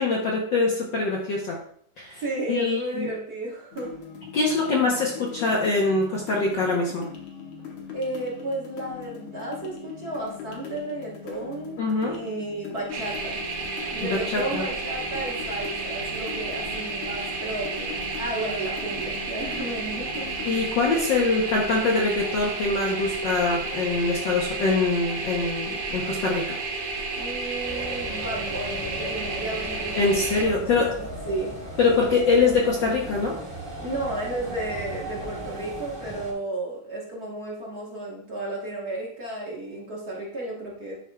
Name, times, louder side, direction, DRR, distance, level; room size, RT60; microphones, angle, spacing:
voice 1, 0.0-1.6 2.0-2.2 2.5-3.1 4.3-7.1 11.8-12.1 14.0-14.6 20.4-26.6 30.0-30.9 31.8-33.4, left 3 dB, 80° left, -2 dB, 1.0 m, -24 dB
voice 2, 2.1-3.9 7.9-13.4 13.9-20.3 27.1-31.5 33.8-41.0, right 2 dB, 50° right, -4 dB, 1.2 m, -33 dB
sound 1, 3.7-20.5, left 7 dB, 60° left, 1.6 m, -41 dB
sound 2, 12.9-30.4, right 3 dB, 75° right, 2.8 m, -32 dB
sound 3, 27.6-36.3, equal, 15° right, 1.2 m, -37 dB
11.5 x 5.1 x 2.3 m, 0.63 s
omnidirectional pair, 3.4 m